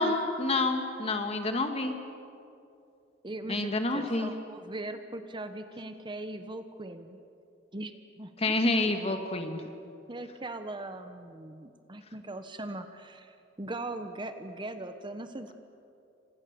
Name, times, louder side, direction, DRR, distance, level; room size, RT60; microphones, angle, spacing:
voice 1, 0.0-2.0 3.5-4.3 8.4-9.6, left 2 dB, 35° left, 5 dB, 2.2 m, -28 dB
voice 2, 3.2-7.2 7.7-8.6 9.0-9.3 10.1-15.5, right 2 dB, 25° right, 8 dB, 1.1 m, -40 dB
30.0 x 26.0 x 7.0 m, 2.6 s
head